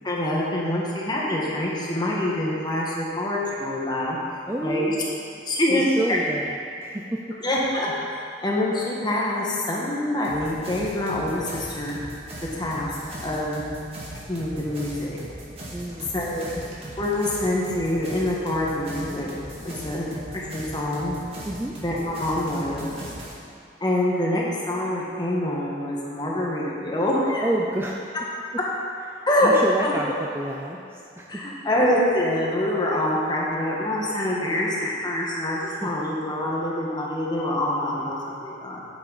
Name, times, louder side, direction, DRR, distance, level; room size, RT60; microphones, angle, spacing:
voice 1, 0.0-4.2 4.6-4.9 5.5-5.8 7.4-7.9 8.4-12.0 12.5-12.9 13.2-13.6 14.3-15.2 16.1-16.6 17.0-19.3 19.6-21.2 21.8-22.9 23.8-27.4 29.3-29.5 29.8-29.9 31.3-38.8, left 1 dB, 25° left, -4 dB, 1.5 m, -25 dB
voice 2, 4.5-5.2 5.7-7.2 15.7-16.1 21.5-21.7 27.4-28.0 29.1-31.4 35.8-35.9, right 1 dB, 15° right, -1 dB, 0.4 m, -29 dB
sound 1, 10.2-23.3, right 1 dB, 35° right, 1.9 m, -39 dB
8.9 x 8.3 x 4.0 m, 2.5 s
head